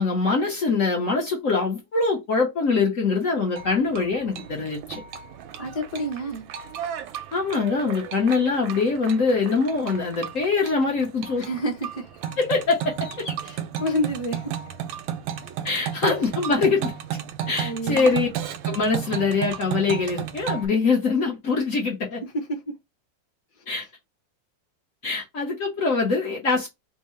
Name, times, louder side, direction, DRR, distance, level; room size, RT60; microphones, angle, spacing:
voice 1, 0.0-5.0 7.3-11.5 12.4-13.3 15.6-16.9 17.5-18.3 18.6-22.2 23.7-23.8 25.0-26.7, left 4 dB, 55° left, 1.1 m, -23 dB
sound 1, 3.6-20.7, right 9 dB, 85° right, 1.3 m, -34 dB
voice 2, 5.6-6.5 11.4-12.2 13.4-14.5 17.6-18.1 22.2-22.6 23.6-23.7, equal, 10° left, 0.7 m, -29 dB
3.6 x 2.0 x 4.2 m
omnidirectional pair, 2.1 m